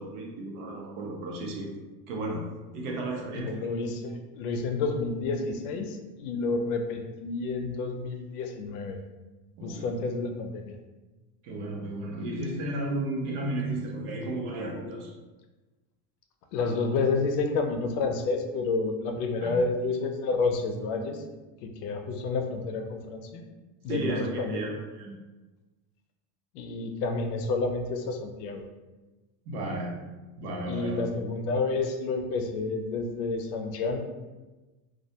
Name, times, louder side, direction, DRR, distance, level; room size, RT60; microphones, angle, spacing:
voice 1, 0.0-1.7 2.1-2.4 2.7-3.7 6.4-6.5 9.6-10.0 11.4-15.1 19.4-19.6 23.9-25.2 29.4-29.9 30.4-31.0, right 1 dB, 75° right, 0 dB, 0.7 m, -33 dB
voice 2, 3.3-9.0 9.6-10.7 16.5-21.2 21.6-23.4 23.8-24.6 26.5-28.6 30.7-34.1, left 3 dB, 80° left, 5 dB, 0.6 m, -30 dB
2.3 x 2.2 x 2.7 m, 1.2 s
cardioid pair, 175°, 46 cm